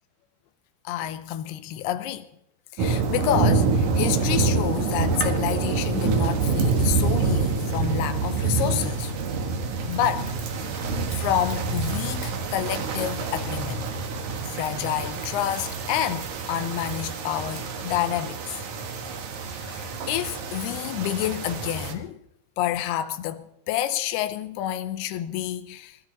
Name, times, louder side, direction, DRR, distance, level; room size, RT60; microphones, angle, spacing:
voice 1, 0.9-2.3 2.7-9.1 9.9-10.3 11.1-13.9 14.5-18.4 19.5-22.2 22.6-26.0, left 12 dB, 85° left, 2.8 m, -28 dB
sound 1, 2.8-21.9, right 4 dB, 55° right, 2.6 m, -27 dB
22.0 x 12.5 x 4.0 m
omnidirectional pair, 4.4 m